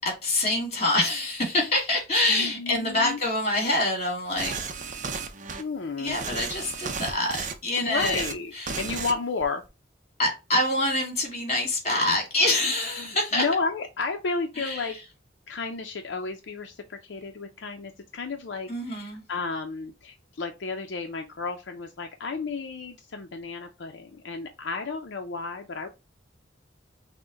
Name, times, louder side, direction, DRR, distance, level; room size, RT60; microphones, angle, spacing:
voice 1, 0.0-4.6 6.0-8.2 8.5-8.8 10.2-13.4 14.6-15.0 18.7-19.2, left 2 dB, 35° left, 2.1 m, -26 dB
voice 2, 2.3-3.2 5.6-6.2 7.8-9.6 12.6-15.0 15.5-25.9, left 4 dB, 75° left, 0.5 m, -32 dB
sound 1, 4.4-5.6 6.1-7.5 7.9-8.3 8.7-9.1 9.4-9.7, right 5 dB, 45° right, 0.6 m, -34 dB
5.9 x 2.2 x 3.8 m
head